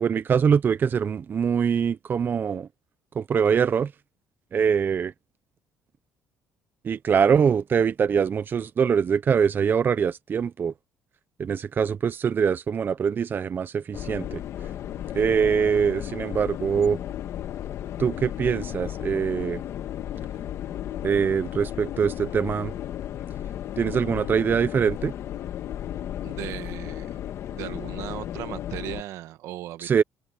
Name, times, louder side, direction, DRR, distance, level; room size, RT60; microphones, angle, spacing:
voice 1, 0.0-2.7 3.2-3.9 4.5-5.1 6.8-10.7 11.4-14.4 15.1-17.0 18.0-19.6 21.0-22.7 23.8-25.1 29.8-30.0, right 7 dB, 40° right, 0.7 m, -23 dB
sound 1, 13.9-29.0, left 11 dB, 65° left, 1.6 m, -34 dB
voice 2, 26.2-27.2 27.5-30.0, right 14 dB, 80° right, 1.5 m, -37 dB
open air
cardioid pair, 95°, 5 cm